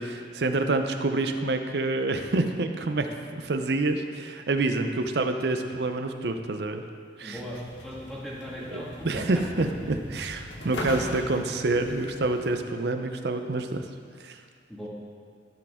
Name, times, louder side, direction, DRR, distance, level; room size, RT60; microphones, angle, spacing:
voice 1, 0.0-6.8 7.2-7.4 8.7-13.8 14.2-14.4, right 2 dB, 70° right, 6 dB, 0.6 m, -27 dB
voice 2, 7.2-9.2 11.1-11.3 14.7-14.9, equal, ahead, -7 dB, 1.7 m, -38 dB
sound 1, 7.3-12.6, left 1 dB, 85° left, 1.1 m, -40 dB
14.0 x 5.0 x 3.6 m, 2.1 s
head